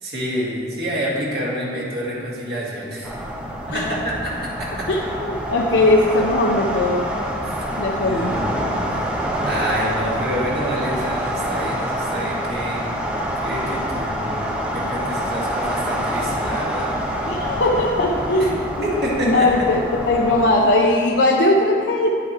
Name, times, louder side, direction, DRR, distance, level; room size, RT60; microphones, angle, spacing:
voice 1, 0.0-3.1 3.7-4.9 7.4-7.6 8.0-8.6 9.4-12.9 13.4-14.4 14.7-16.9 18.4-18.5 18.8-19.7, equal, 60° right, -6 dB, 2.2 m, -27 dB
sound 1, 3.0-20.5, equal, 5° right, 0.7 m, -26 dB
voice 2, 4.9-7.0 7.8-8.4 17.3-18.6 19.2-22.1, left 2 dB, 85° left, -2 dB, 0.7 m, -19 dB
10.5 x 7.7 x 3.2 m, 2.3 s
head